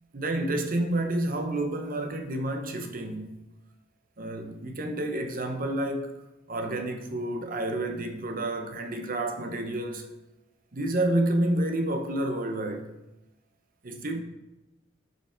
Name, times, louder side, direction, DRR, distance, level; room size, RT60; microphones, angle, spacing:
voice 1, 0.1-3.3 4.2-6.2 6.5-10.0 10.7-12.9 13.8-14.2, right 1 dB, 45° right, 0.8 m, -29 dB
7.6 x 5.5 x 4.4 m
head